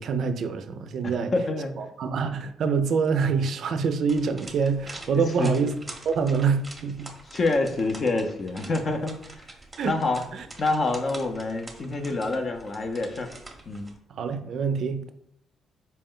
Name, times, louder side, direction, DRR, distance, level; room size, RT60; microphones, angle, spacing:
voice 1, 0.0-1.3 1.8-5.7 6.0-7.1 9.8-9.9 10.3-10.5 14.1-15.1, right 5 dB, 65° right, 0.4 m, -26 dB
voice 2, 1.0-1.7 5.1-5.5 7.3-9.5 9.8-10.2 10.6-13.3 13.7-13.9, left 3 dB, 45° left, 0.5 m, -27 dB
sound 1, 4.1-14.0, right 2 dB, 20° right, 0.7 m, -45 dB
4.2 x 2.1 x 3.7 m
cardioid pair, 90°, 0 cm